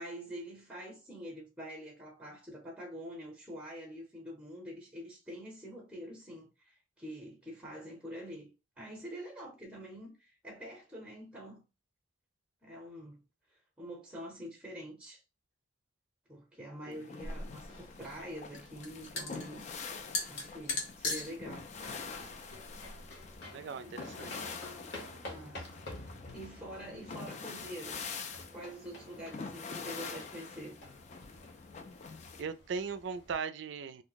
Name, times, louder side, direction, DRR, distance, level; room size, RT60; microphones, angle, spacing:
voice 1, 0.0-8.5 8.8-11.6 12.6-13.2 13.5-15.2 16.3-19.7 20.3-21.7 25.3-25.6 25.9-28.0 28.5-30.8, equal, 5° right, 0.7 m, -46 dB
sound 1, 16.9-32.4, left 5 dB, 35° left, 0.3 m, -45 dB
sound 2, 17.2-23.4, left 2 dB, 85° left, 1.1 m, -40 dB
sound 3, 21.6-33.3, left 1 dB, 60° left, 1.0 m, -51 dB
voice 2, 23.5-24.6 32.4-34.0, right 5 dB, 65° right, 0.4 m, -39 dB
2.6 x 2.1 x 3.9 m
head